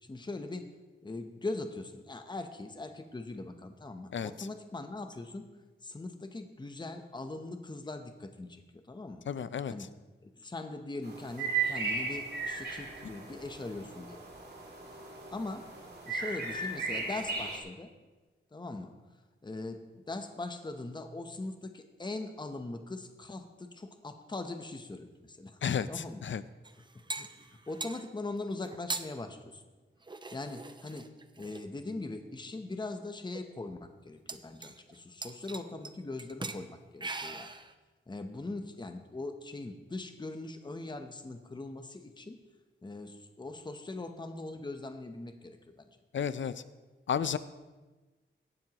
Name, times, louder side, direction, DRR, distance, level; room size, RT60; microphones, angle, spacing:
voice 1, 0.0-0.7 1.0-5.4 5.8-9.2 9.7-9.9 10.2-14.2 15.3-15.7 16.1-17.9 18.5-19.0 19.4-25.6 25.9-26.3 26.9-27.3 27.7-29.6 30.3-31.1 31.4-37.5 38.1-42.4 42.8-45.9, left 2 dB, 20° left, 7 dB, 0.8 m, -41 dB
voice 2, 9.3-9.7 25.6-25.9 26.2-26.4 46.1-46.5 47.1-47.4, left 7 dB, 65° left, 14 dB, 0.5 m, -31 dB
sound 1, 11.0-17.6, right 4 dB, 50° right, 2.3 m, -36 dB
sound 2, 26.6-28.0 28.6-29.1 30.0-31.6 32.5-32.6 33.0-33.1 33.3-33.4 34.3-35.0 35.2-35.9 36.2-36.6 37.0-37.7, right 3 dB, 20° right, 0.6 m, -41 dB
17.5 x 12.0 x 3.0 m, 1.2 s
wide cardioid pair, 135°, 21 cm